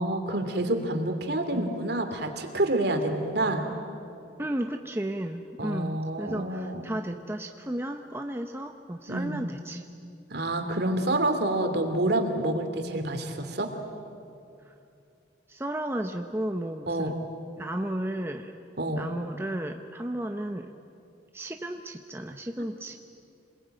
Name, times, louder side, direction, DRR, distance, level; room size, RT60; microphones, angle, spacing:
voice 1, 0.0-3.6 5.6-6.8 9.1-9.4 10.3-13.7 16.9-17.1 18.8-19.0, right 1 dB, 55° right, 5 dB, 2.8 m, -28 dB
voice 2, 4.4-9.9 11.9-12.0 14.7-14.8 15.5-17.1 17.6-18.6 19.0-20.7 21.3-23.0, right 1 dB, 10° right, 4 dB, 0.7 m, -33 dB
27.0 x 21.0 x 9.1 m, 2.6 s
head